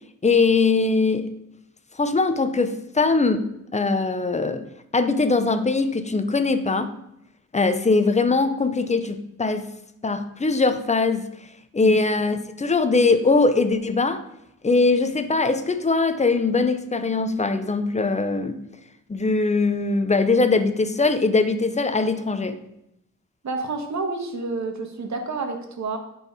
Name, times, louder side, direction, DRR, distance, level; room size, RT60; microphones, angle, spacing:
voice 1, 0.2-1.3 2.0-3.4 3.7-4.6 4.9-6.9 7.5-9.7 10.0-11.3 11.7-14.2 14.6-18.6 19.1-22.6, left 3 dB, 20° left, 9 dB, 0.7 m, -21 dB
voice 2, 23.4-26.0, right 3 dB, 60° right, 5 dB, 1.6 m, -29 dB
10.5 x 4.7 x 5.4 m, 0.82 s
wide cardioid pair, 115°, 32 cm